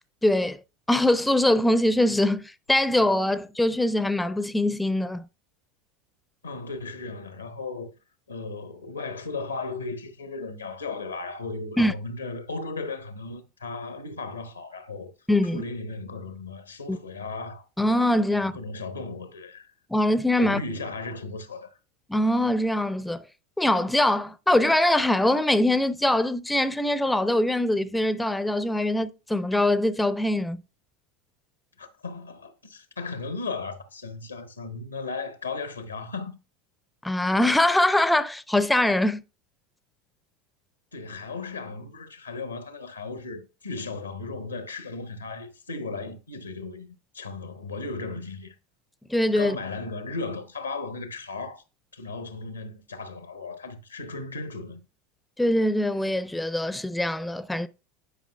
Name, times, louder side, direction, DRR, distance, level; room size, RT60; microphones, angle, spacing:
voice 1, 0.2-0.6 0.9-5.2 11.8-11.9 15.3-15.6 16.9-17.0 17.8-18.5 19.9-20.6 22.1-23.2 23.6-30.6 37.0-39.2 49.1-49.6 55.4-57.7, left 1 dB, 5° left, 0.4 m, -23 dB
voice 2, 6.4-7.9 8.3-15.1 15.5-17.7 18.3-19.7 20.4-21.8 31.8-36.3 40.9-48.6 49.4-51.6 51.9-54.8, left 3 dB, 85° left, 0.8 m, -36 dB
10.0 x 5.1 x 2.2 m
figure-of-eight pair, 80°, 0 cm